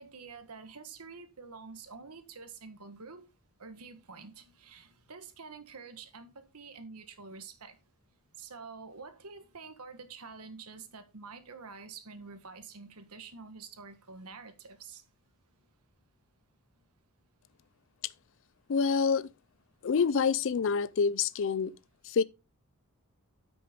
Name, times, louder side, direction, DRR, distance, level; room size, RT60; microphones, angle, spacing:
voice 1, 0.0-3.3 3.6-7.8 8.4-15.0, right 4 dB, 90° right, 1.4 m, -47 dB
voice 2, 18.7-19.3 19.8-21.7 22.0-22.2, left 5 dB, 60° left, 0.4 m, -27 dB
9.5 x 6.1 x 3.7 m
head